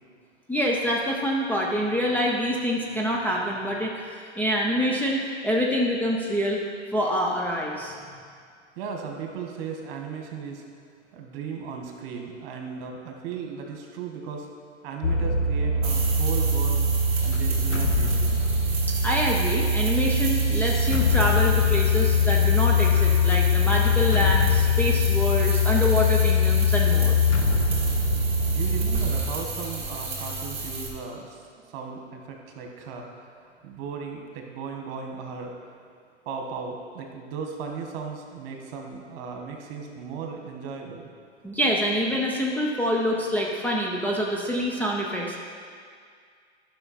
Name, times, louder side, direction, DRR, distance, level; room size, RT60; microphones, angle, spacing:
voice 1, 0.5-6.6 6.9-7.9 19.0-27.2 41.4-45.4, equal, 5° left, -3 dB, 0.7 m, -26 dB
voice 2, 8.8-10.6 11.1-14.5 14.8-16.8 17.2-18.4 28.4-31.4 31.7-33.3 33.6-35.5 36.2-41.1, right 5 dB, 50° right, 2 dB, 1.6 m, -36 dB
sound 1, 15.0-29.2, left 3 dB, 90° left, 0.7 m, -22 dB
sound 2, 15.8-30.9, right 3 dB, 15° right, 2.6 m, -34 dB
10.5 x 6.1 x 4.3 m, 2.1 s
hypercardioid pair, 115°, 35 cm